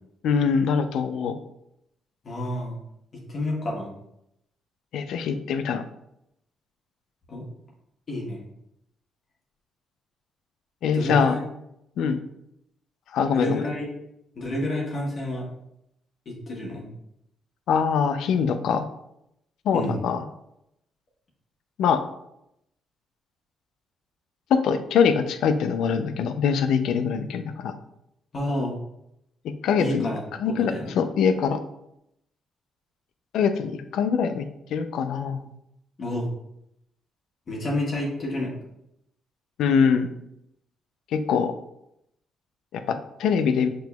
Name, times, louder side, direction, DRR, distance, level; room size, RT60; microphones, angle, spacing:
voice 1, 0.2-1.4 4.9-5.8 10.8-11.3 12.0-12.2 13.1-13.6 17.7-18.9 19.7-20.2 21.8-22.0 24.5-27.7 29.4-30.1 30.4-31.6 33.3-35.5 39.6-40.1 41.1-41.5 42.7-43.7, left 6 dB, 80° left, 9 dB, 0.4 m, -23 dB
voice 2, 2.2-2.8 3.3-3.9 7.3-7.4 8.1-8.4 10.9-11.4 13.3-13.9 14.3-15.4 16.2-16.8 19.7-20.0 28.3-28.8 29.8-30.9 36.0-36.3 37.5-38.5, left 1 dB, 45° left, -3 dB, 1.1 m, -29 dB
5.9 x 2.9 x 2.3 m, 0.80 s
cardioid pair, 90°, 0 cm